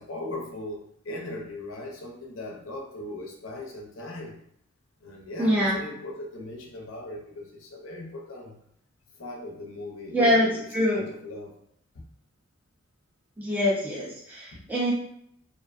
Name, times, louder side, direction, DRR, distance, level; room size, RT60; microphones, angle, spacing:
voice 1, 0.0-4.4 5.0-8.6 9.1-11.5 11.9-12.0 14.5-14.7, left 1 dB, 70° left, 0 dB, 0.6 m, -38 dB
voice 2, 5.4-5.8 10.1-11.0 13.4-14.9, left 1 dB, 10° right, -7 dB, 0.3 m, -24 dB
2.4 x 2.2 x 2.4 m, 0.71 s
head